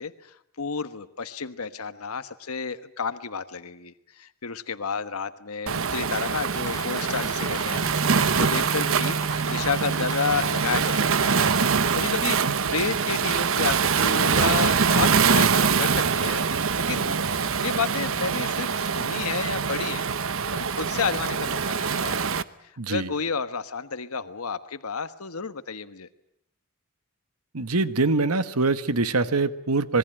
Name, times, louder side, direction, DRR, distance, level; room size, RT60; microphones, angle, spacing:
voice 1, 0.0-9.2 9.5-11.6 11.9-16.4 16.8-17.2 17.6-20.1 20.5-22.3 22.6-26.1, left 5 dB, 80° left, 11 dB, 1.3 m, -31 dB
Waves surf, 5.7-22.4, right 6 dB, 65° right, 1.0 m, -24 dB
sound 1, 6.6-12.0, left 3 dB, 15° left, 3.7 m, -41 dB
sound 2, 7.7-12.0, right 4 dB, 25° right, 1.3 m, -33 dB
voice 2, 22.8-23.1 27.5-30.0, right 3 dB, 90° right, 13 dB, 1.4 m, -24 dB
26.5 x 21.5 x 9.0 m, 0.75 s
head